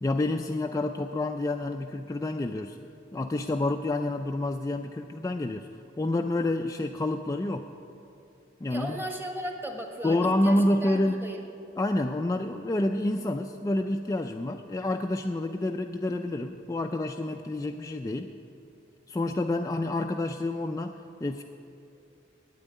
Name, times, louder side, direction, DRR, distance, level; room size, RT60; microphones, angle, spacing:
voice 1, 0.0-2.8 3.1-5.7 6.0-7.7 8.6-9.0 10.0-11.2 11.8-18.3 19.1-21.4, left 1 dB, 15° left, 4 dB, 0.3 m, -28 dB
voice 2, 8.7-11.4, right 1 dB, 10° right, 3 dB, 1.3 m, -36 dB
9.1 x 8.8 x 9.5 m, 2.7 s
head